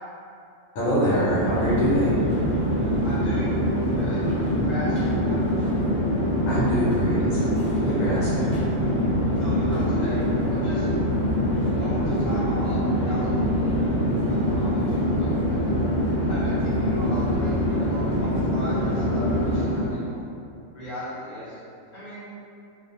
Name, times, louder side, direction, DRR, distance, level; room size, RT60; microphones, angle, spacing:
voice 1, 0.7-2.3 6.4-8.6, equal, 75° left, -10 dB, 1.0 m, -25 dB
Chatter / Fixed-wing aircraft airplane, 1.1-20.0, equal, 25° right, 0.7 m, -24 dB
voice 2, 3.0-5.8 9.4-10.9 11.8-15.7 16.3-20.1 20.7-21.6 21.9-22.3, equal, 40° left, -11 dB, 0.7 m, -38 dB
2.4 x 2.2 x 2.6 m, 2.5 s
omnidirectional pair, 1.4 m